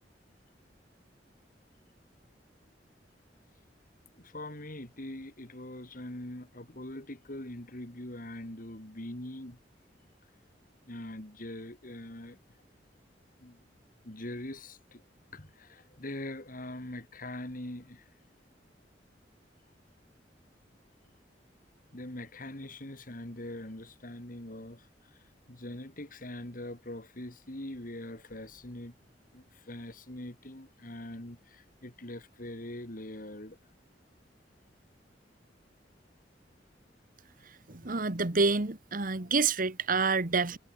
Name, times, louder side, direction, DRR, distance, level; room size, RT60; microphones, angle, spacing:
voice 1, 4.2-9.6 10.9-12.4 13.4-13.6 14.0-15.0 15.3-18.1 21.9-24.9 25.5-28.9 29.3-33.6, left 1 dB, 50° left, 3.3 m, -42 dB
voice 2, 37.8-40.6, right 4 dB, 50° right, 1.7 m, -27 dB
head